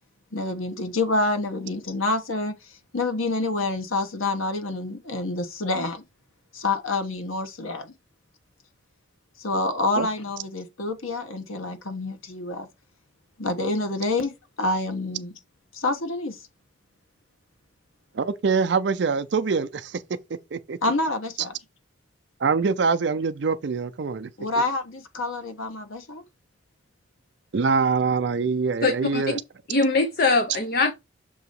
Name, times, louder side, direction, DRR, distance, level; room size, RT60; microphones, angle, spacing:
voice 1, 0.3-2.6 2.9-6.0 6.5-7.9 9.4-12.7 13.4-15.3 15.7-16.4 20.8-21.6 24.4-26.2, left 2 dB, 90° left, 1.3 m, -27 dB
voice 2, 18.1-20.0 20.3-20.8 22.4-24.3 27.5-29.4, right 5 dB, 60° right, 0.4 m, -24 dB
voice 3, 28.8-29.2 29.7-30.9, left 3 dB, 45° left, 0.7 m, -22 dB
6.9 x 2.8 x 5.3 m
head